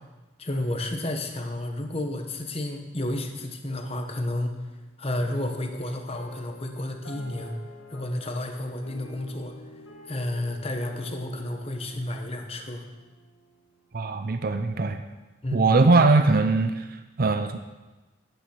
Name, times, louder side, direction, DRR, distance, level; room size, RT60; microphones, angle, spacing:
voice 1, 0.4-4.6 5.0-7.6 7.9-9.5 10.1-12.8 15.4-15.6, left 1 dB, 30° left, 4 dB, 1.1 m, -31 dB
sound 1, 5.2-13.7, equal, 70° left, 2.1 m, -47 dB
voice 2, 13.9-15.0 15.5-17.6, right 3 dB, 45° right, 8 dB, 0.5 m, -21 dB
9.6 x 9.2 x 5.8 m, 1.2 s
head